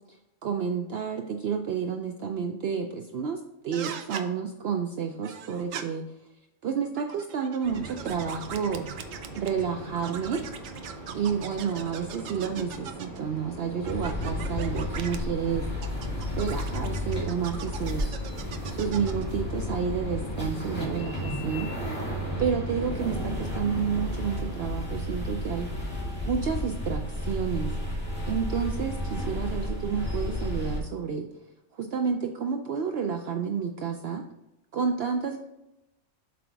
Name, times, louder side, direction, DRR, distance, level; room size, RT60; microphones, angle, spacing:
voice 1, 0.4-3.4 3.6-6.0 6.6-8.9 9.4-10.4 11.1-15.7 16.3-18.2 18.7-21.7 22.4-25.7 26.3-27.7 28.3-31.3 31.8-34.2 34.7-35.4, right 6 dB, 65° right, 4 dB, 0.7 m, -30 dB
sound 1, 3.7-4.3 5.2-5.8 6.8-9.6 10.0-13.2 13.8-15.2 15.8-19.3, right 8 dB, 85° right, 1.0 m, -40 dB
sound 2, 7.6-24.7, right 2 dB, 15° right, 2.1 m, -42 dB
sound 3, 13.8-30.8, left 1 dB, 10° left, 2.0 m, -32 dB
7.7 x 3.4 x 4.5 m, 0.93 s
omnidirectional pair, 1.3 m